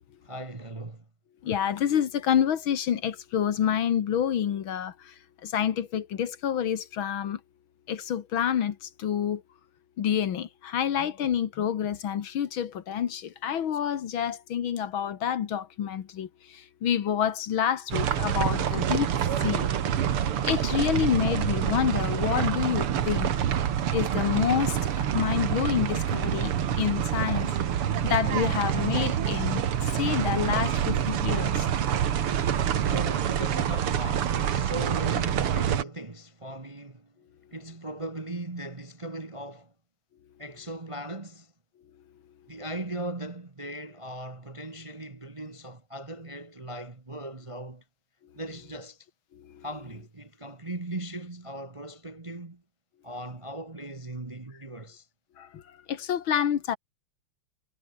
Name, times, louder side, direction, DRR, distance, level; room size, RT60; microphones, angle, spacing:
voice 1, 0.2-1.0 32.9-37.1 37.5-39.7 40.4-41.5 42.5-47.8 48.3-49.1 49.6-52.6 53.0-55.1, right 1 dB, 20° right, 0.9 m, -38 dB
voice 2, 1.4-4.9 5.4-7.4 7.9-8.7 9.0-9.4 10.0-16.3 16.8-19.1 19.4-19.7 20.4-23.3 23.9-24.8 25.1-26.5 26.8-27.5 28.0-29.6 30.0-31.7 55.9-56.8, left 9 dB, 65° left, 2.1 m, -27 dB
sound 1, 17.9-35.8, right 9 dB, 80° right, 2.4 m, -27 dB
omnidirectional pair, 2.4 m